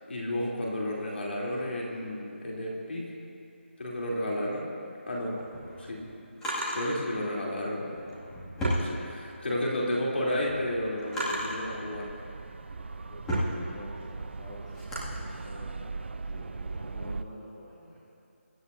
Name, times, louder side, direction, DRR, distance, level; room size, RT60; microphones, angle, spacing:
voice 1, 0.1-3.1 3.8-4.7 5.1-5.4 5.8-6.0 6.7-7.9 8.7-12.1, left 1 dB, 60° left, -4 dB, 3.4 m, -32 dB
Drawer open or close, 5.4-6.9 7.9-9.5 10.0-11.7 12.3-15.1, equal, 5° left, 2.3 m, -34 dB
voice 2, 9.6-10.4 13.1-18.0, equal, 20° left, -9 dB, 2.3 m, -48 dB
sound 1, 11.0-17.2, right 4 dB, 60° right, 0.4 m, -40 dB
24.0 x 12.0 x 2.8 m, 2.7 s
figure-of-eight pair, 170°, 7 cm